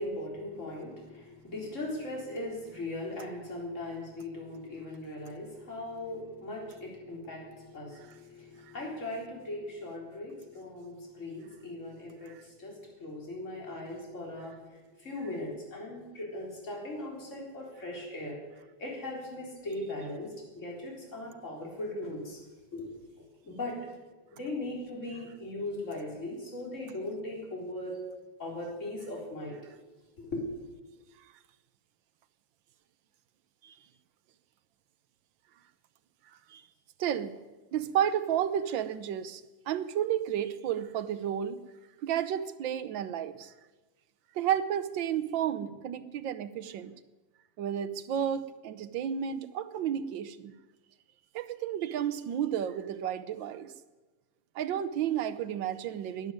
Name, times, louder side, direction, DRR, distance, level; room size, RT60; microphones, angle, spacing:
voice 1, 0.0-22.4 22.7-23.7 24.3-28.0 28.4-29.6 30.2-30.4, left 1 dB, 40° left, -2 dB, 4.3 m, -39 dB
voice 2, 37.0-37.4 37.7-41.6 42.0-43.5 44.3-46.9 47.6-50.5 51.3-53.7 54.5-56.3, right 9 dB, 75° right, 12 dB, 1.5 m, -32 dB
12.5 x 11.0 x 9.4 m, 1.2 s
omnidirectional pair, 2.1 m